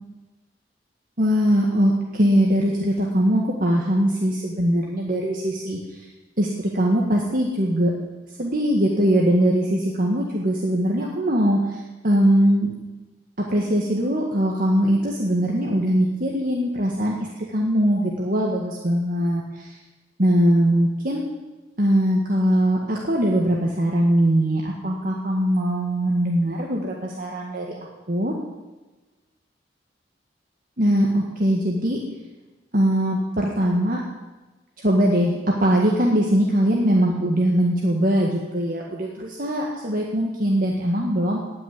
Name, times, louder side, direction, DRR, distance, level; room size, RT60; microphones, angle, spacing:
voice 1, 1.2-6.0 6.4-6.5 6.7-7.9 8.4-12.7 13.5-19.7 20.2-21.2 21.8-27.8 28.1-28.4 30.8-32.0 32.7-34.0 34.8-41.4, equal, 50° right, -2 dB, 1.9 m, -21 dB
19.0 x 6.5 x 9.7 m, 1.2 s
head